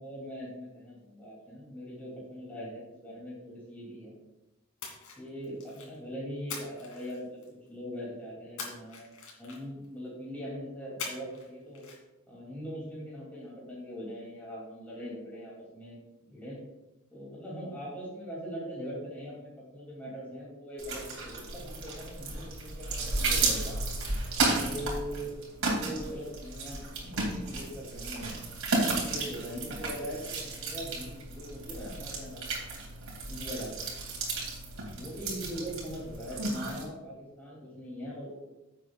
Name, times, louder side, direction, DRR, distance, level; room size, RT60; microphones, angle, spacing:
voice 1, 0.0-4.1 5.2-7.4 7.7-9.1 9.4-11.8 12.3-16.6 17.1-23.8 24.6-25.3 25.6-28.4 28.7-32.4 33.3-33.7 35.0-38.4, equal, 10° left, -8 dB, 2.7 m, -41 dB
Splash splatter, 4.8-6.0 6.5-7.7 8.6-9.9 11.0-11.5 11.7-12.0, left 5 dB, 75° left, 2.5 m, -42 dB
sound 1, 20.8-36.8, right 3 dB, 70° right, 2.8 m, -33 dB
16.0 x 7.5 x 2.4 m, 1.0 s
head